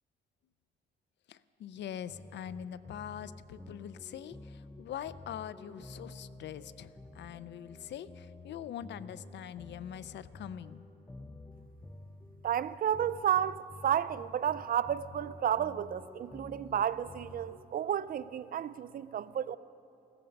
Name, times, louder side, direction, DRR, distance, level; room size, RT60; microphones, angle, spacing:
voice 1, 1.3-10.8, left 10 dB, 65° left, 0.5 m, -43 dB
sound 1, 2.0-17.6, left 2 dB, 10° left, 0.6 m, -51 dB
voice 2, 12.4-19.6, right 10 dB, 45° right, 0.4 m, -32 dB
16.5 x 13.5 x 5.3 m
cardioid pair, 90°, 20 cm